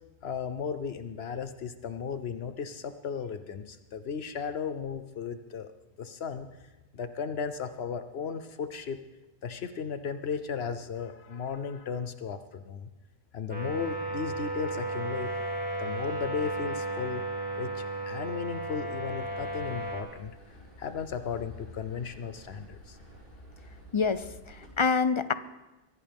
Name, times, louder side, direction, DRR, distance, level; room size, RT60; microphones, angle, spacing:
voice 1, 0.2-5.7 6.0-6.5 6.9-9.0 9.4-12.9 13.3-15.3 15.8-17.2 17.5-20.3 20.8-23.0, left 6 dB, 75° left, 10 dB, 1.0 m, -35 dB
sound 1, 13.5-20.0, right 2 dB, 10° right, 2.4 m, -34 dB
sound 2, 19.2-24.7, right 1 dB, 60° left, 4.4 m, -52 dB
voice 2, 23.9-25.3, left 5 dB, 40° left, 13 dB, 0.5 m, -27 dB
23.0 x 16.0 x 3.5 m, 1.1 s
omnidirectional pair, 1.1 m